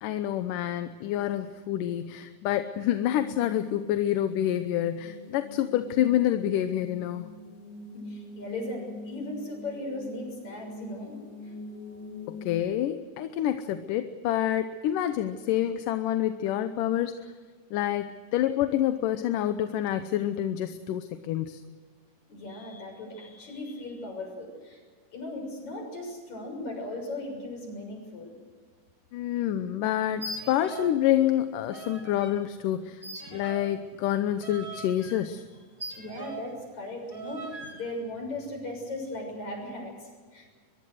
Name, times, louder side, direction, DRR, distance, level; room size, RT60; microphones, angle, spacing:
voice 1, 0.0-7.3 12.3-17.2 17.7-21.6 29.1-33.0 33.3-35.4, left 12 dB, 85° left, 9 dB, 2.5 m, -27 dB
sound 1, 2.7-12.6, left 2 dB, 35° left, 4.7 m, -44 dB
voice 2, 8.1-11.1 11.4-11.5 22.3-24.8 25.1-28.4 36.0-40.5, left 1 dB, 60° left, 3 dB, 8.0 m, -37 dB
sound 2, 30.1-31.0 31.3-32.4 33.0-36.6 37.1-37.9, right 2 dB, 25° right, 3.9 m, -41 dB
23.5 x 23.0 x 6.5 m, 1.5 s
omnidirectional pair, 3.8 m